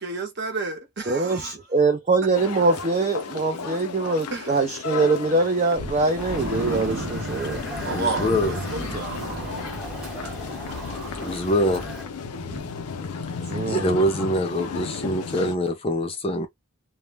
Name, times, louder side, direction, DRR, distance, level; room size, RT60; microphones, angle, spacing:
voice 1, 0.0-1.5 4.3-4.6 7.8-9.6 10.2-10.7, right 3 dB, 50° right, 0.8 m, -32 dB
voice 2, 1.1-7.6 13.5-13.9, right 3 dB, 30° right, 0.4 m, -23 dB
sound 1, 2.3-15.6, left 5 dB, 85° left, 0.5 m, -35 dB
sound 2, 5.8-13.5 13.8-14.0 14.4-14.5, right 1 dB, 80° right, 0.8 m, -35 dB
Motor vehicle (road) / Siren, 6.2-12.0, equal, 5° right, 0.9 m, -37 dB
voice 3, 7.8-8.6 11.1-11.8 13.7-16.5, equal, 25° left, 0.5 m, -24 dB
2.1 x 2.0 x 3.2 m
head